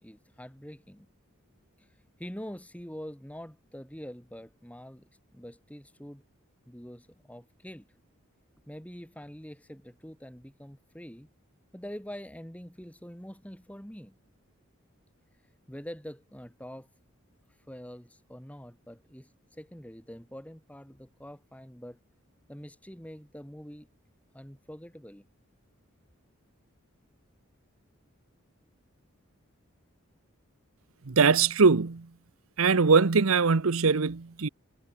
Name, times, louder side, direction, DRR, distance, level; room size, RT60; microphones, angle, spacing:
voice 1, 0.0-1.1 1.8-5.1 5.3-6.2 6.7-7.9 8.6-11.3 11.7-14.1 15.7-16.9 17.5-22.0 22.5-23.9 24.3-25.2, equal, 5° left, 3.1 m, -45 dB
voice 2, 31.1-32.1 32.6-34.5, right 4 dB, 85° right, 0.8 m, -22 dB
head